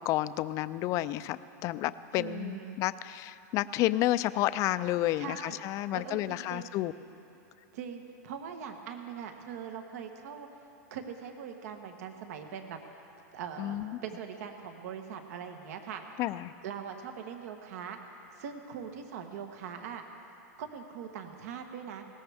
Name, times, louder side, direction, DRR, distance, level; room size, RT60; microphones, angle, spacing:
voice 1, 0.1-6.9 13.6-13.9 16.2-16.5, left 15 dB, 40° left, 15 dB, 0.4 m, -30 dB
voice 2, 2.1-2.8 5.2-5.6 5.9-6.7 7.7-10.5 10.9-12.8 13.3-13.8 14.0-16.0 16.6-18.0 18.4-20.0 20.6-22.0, right 7 dB, 70° right, 5 dB, 1.3 m, -41 dB
20.0 x 17.5 x 3.5 m, 2.9 s
supercardioid pair, 135°, 9 cm